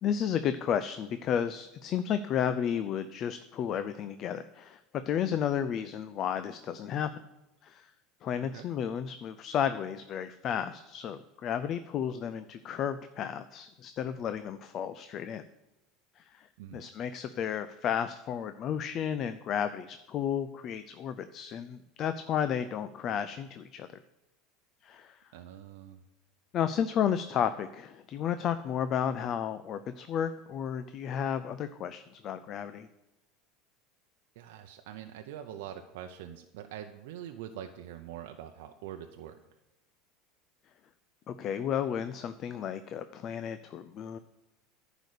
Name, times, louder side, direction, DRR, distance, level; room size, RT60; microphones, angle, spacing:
voice 1, 0.0-4.8 5.1-7.2 7.6-7.9 8.2-15.4 16.2-16.5 16.7-23.9 24.8-25.2 26.5-32.9 41.3-44.2, left 8 dB, 45° left, 11 dB, 0.4 m, -32 dB
voice 2, 25.3-26.0 34.4-39.4, right 10 dB, 80° right, 5 dB, 0.6 m, -44 dB
10.5 x 5.0 x 6.6 m, 0.96 s
supercardioid pair, 120°, 0 cm